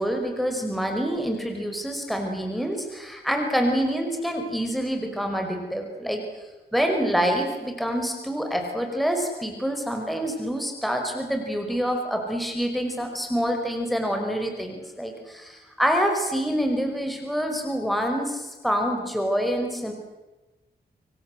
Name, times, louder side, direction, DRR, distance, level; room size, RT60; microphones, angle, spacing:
voice 1, 0.0-6.2 6.7-19.9, equal, ahead, 3 dB, 5.4 m, -26 dB
27.5 x 24.0 x 8.0 m, 1.1 s
wide cardioid pair, 85°, 18 cm